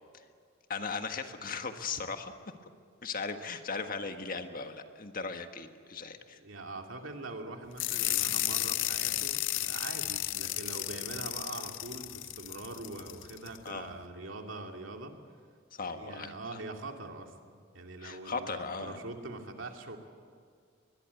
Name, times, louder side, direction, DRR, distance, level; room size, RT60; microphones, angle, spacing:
voice 1, 0.7-2.3 3.0-6.4 13.6-13.9 15.7-16.3 18.0-19.0, left 4 dB, 45° left, 7 dB, 1.6 m, -37 dB
voice 2, 6.3-15.2 15.8-20.0, right 2 dB, 90° right, 3 dB, 2.6 m, -43 dB
sound 1, 7.8-13.6, left 15 dB, 75° left, 0.6 m, -33 dB
22.0 x 22.0 x 8.4 m, 2.1 s
head